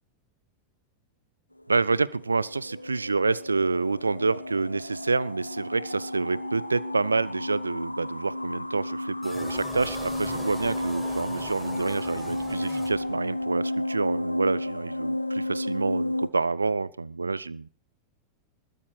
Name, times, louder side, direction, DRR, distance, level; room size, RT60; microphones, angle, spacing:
sound 1, 1.6-16.3, left 1 dB, 85° left, 1.0 m, -33 dB
voice 1, 1.7-17.7, right 3 dB, 80° right, 23 dB, 0.6 m, -28 dB
sound 2, 9.2-13.4, equal, ahead, 5.9 m, -41 dB
20.5 x 8.9 x 6.2 m, 0.42 s
figure-of-eight pair, 90°, 0 cm